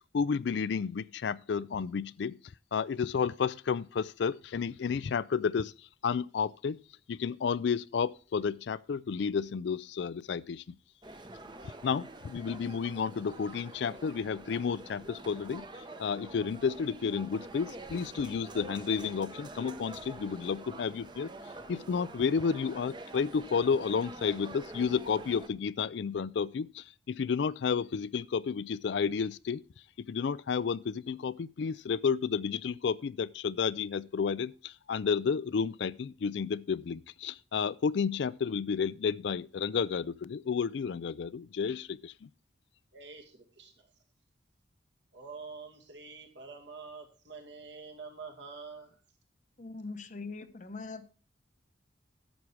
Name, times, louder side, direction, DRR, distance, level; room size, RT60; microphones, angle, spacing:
voice 1, 0.1-2.4 2.7-6.8 7.1-10.6 11.8-21.3 21.7-29.6 30.0-42.3, left 6 dB, 70° left, 0.4 m, -31 dB
sound 1, 11.0-25.5, right 2 dB, 25° right, 0.7 m, -47 dB
voice 2, 42.9-43.9 45.1-49.0, right 4 dB, 70° right, 2.4 m, -47 dB
voice 3, 49.6-51.1, left 3 dB, 40° left, 0.8 m, -42 dB
11.0 x 7.3 x 4.7 m
head